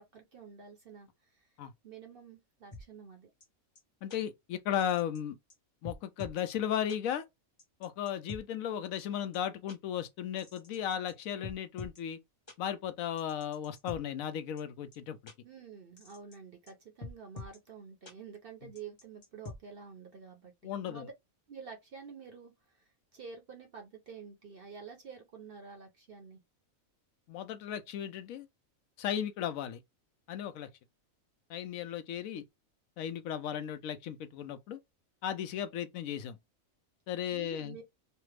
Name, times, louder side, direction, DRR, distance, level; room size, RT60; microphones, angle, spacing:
voice 1, 0.0-1.5 1.8-3.3 15.4-21.1 21.5-22.8 23.1-26.4 37.3-37.8, right 6 dB, 55° right, 0.7 m, -49 dB
sound 1, 2.7-2.8 3.4-3.5 3.8-3.9 4.1-4.2 4.8-5.2 5.5-5.6 5.8-6.4 6.9-7.0 7.6-8.4 9.0-9.1 9.3-9.4 9.7-9.8 10.4-11.1 11.4-12.0 12.5-12.6 13.2-14.0 14.6-14.7 14.9-15.0 15.3-15.4 16.0-16.4 16.7-16.8 17.0-17.6 18.1-18.2 18.8-19.6, left 2 dB, 30° left, 0.5 m, -45 dB
voice 2, 4.0-5.4 5.8-7.2 7.8-12.2 12.6-15.2 20.6-21.1 27.3-28.5 29.0-29.8 30.3-30.7 31.5-32.4 33.0-34.8 35.2-36.4 37.1-37.8, left 9 dB, 75° left, 0.9 m, -35 dB
3.3 x 2.0 x 3.1 m
omnidirectional pair, 1.5 m